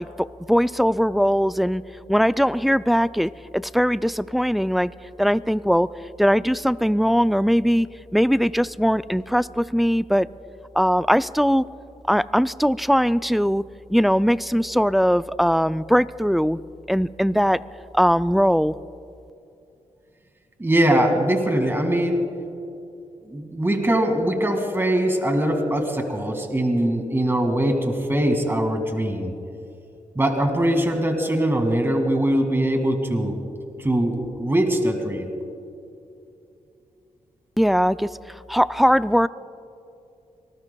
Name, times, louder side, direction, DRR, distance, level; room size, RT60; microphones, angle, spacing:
voice 1, 0.0-1.8 2.1-4.9 5.2-5.9 6.2-10.3 10.8-11.6 12.1-13.6 13.9-16.6 16.9-17.6 17.9-18.8 37.6-38.1 38.5-39.3, equal, ahead, 15 dB, 0.3 m, -20 dB
voice 2, 20.6-22.3 23.2-29.3 30.2-33.4 33.8-35.3, right 1 dB, 15° right, 4 dB, 2.1 m, -22 dB
25.5 x 19.5 x 2.3 m, 2.7 s
cardioid pair, 70°, 13 cm